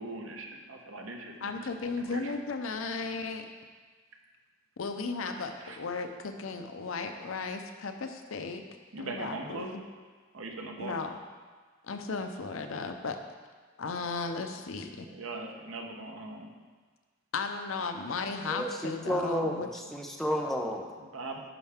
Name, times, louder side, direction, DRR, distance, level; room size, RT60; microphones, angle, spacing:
voice 1, 0.0-2.3 5.3-5.8 8.9-9.7 10.3-11.0 15.0-16.5 21.0-21.4, right 2 dB, 85° right, 2 dB, 1.0 m, -41 dB
voice 2, 1.4-3.4 4.8-8.6 9.0-9.8 10.8-11.1 11.8-13.2 13.8-15.1 17.3-19.7, left 4 dB, 85° left, 6 dB, 0.7 m, -35 dB
voice 3, 18.5-20.8, equal, ahead, 1 dB, 0.7 m, -31 dB
9.8 x 5.7 x 3.5 m, 1.5 s
head